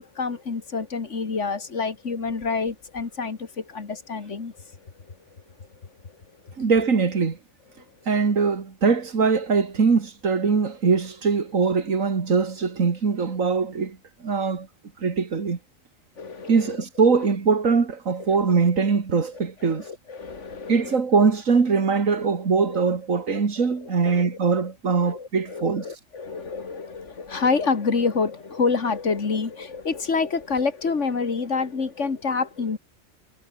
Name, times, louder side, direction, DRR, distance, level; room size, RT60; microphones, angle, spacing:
voice 1, 0.0-4.5 6.4-6.5 16.2-16.8 18.2-18.6 19.3-21.0 22.7-22.8 23.7-24.3 25.0-32.8, left 4 dB, 65° left, 2.3 m, -28 dB
voice 2, 6.6-7.4 8.1-14.0 14.2-14.7 15.0-15.6 16.5-19.8 20.7-25.8, right 5 dB, 85° right, 2.5 m, -22 dB
omnidirectional pair, 1.3 m